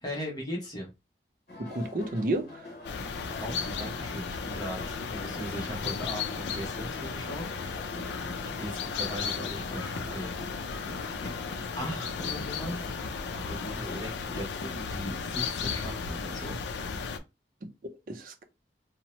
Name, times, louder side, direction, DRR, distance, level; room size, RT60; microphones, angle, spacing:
voice 1, 0.0-0.9 3.4-7.4 8.4-10.3 11.8-12.9 13.5-16.6, equal, 25° left, 0.8 m, -38 dB
sound 1, 1.5-14.1, left 2 dB, 55° left, 0.8 m, -45 dB
voice 2, 1.6-2.7 17.6-17.7 18.1-18.4, right 1 dB, 50° right, 0.4 m, -32 dB
sound 2, 2.8-17.2, left 5 dB, 85° left, 0.4 m, -35 dB
2.8 x 2.0 x 3.0 m
head